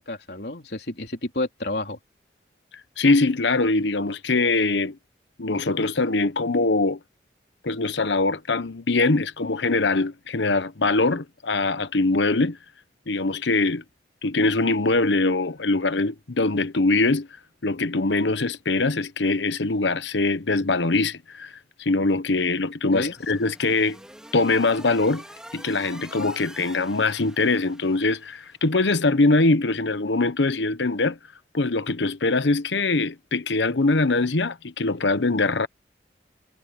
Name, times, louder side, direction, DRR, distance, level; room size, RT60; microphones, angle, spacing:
voice 1, 0.0-2.0 22.9-23.1, left 2 dB, 65° left, 3.4 m, -30 dB
voice 2, 3.0-5.0 5.4-7.0 7.6-12.6 13.1-13.8 14.2-17.3 17.6-21.5 21.8-24.0 24.3-25.2 25.5-31.2 31.5-35.7, left 3 dB, 90° left, 1.0 m, -22 dB
sound 1, 23.1-28.6, right 1 dB, 5° right, 2.3 m, -46 dB
head